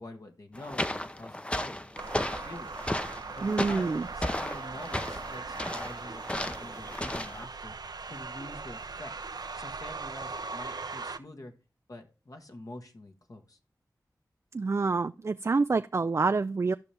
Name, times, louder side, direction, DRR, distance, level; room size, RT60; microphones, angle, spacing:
voice 1, 0.0-1.7 2.0-3.0 3.3-7.7 8.1-9.1 9.6-11.5 11.9-13.6, left 1 dB, 55° left, 1.4 m, -46 dB
sound 1, 0.5-7.4, left 1 dB, 15° left, 0.7 m, -35 dB
sound 2, 2.0-11.2, right 4 dB, 75° right, 0.7 m, -40 dB
voice 2, 3.4-4.1 14.5-16.7, right 4 dB, 40° right, 0.3 m, -27 dB
13.5 x 5.6 x 3.4 m
cardioid pair, 40°, 7 cm